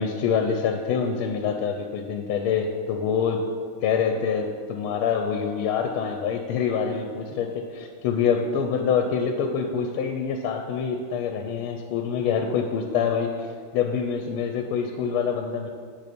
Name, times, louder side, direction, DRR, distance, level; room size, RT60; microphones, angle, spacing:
voice 1, 0.0-3.4 3.8-13.5 13.7-15.7, left 6 dB, 90° left, 5 dB, 1.5 m, -26 dB
7.9 x 6.7 x 5.1 m, 2.2 s
omnidirectional pair, 2.3 m